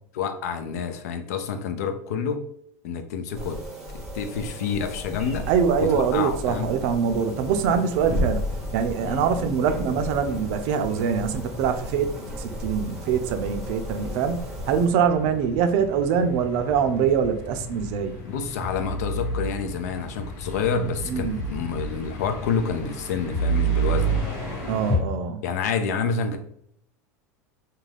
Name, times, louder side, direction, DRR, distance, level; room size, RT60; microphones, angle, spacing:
voice 1, 0.1-2.5 2.8-3.6 3.9-5.5 5.8-6.7 9.0-9.3 18.2-24.2 25.4-26.4, left 6 dB, 85° left, 8 dB, 0.4 m, -28 dB
sound 1, 3.3-14.9, equal, 5° right, 0.7 m, -34 dB
voice 2, 5.5-8.4 8.7-12.1 12.4-18.1 21.1-21.4 24.7-25.4, right 7 dB, 60° right, 8 dB, 0.4 m, -24 dB
sound 2, 6.9-25.0, right 2 dB, 50° left, 1.1 m, -32 dB
2.4 x 2.2 x 3.2 m, 0.69 s
supercardioid pair, 125°, 8 cm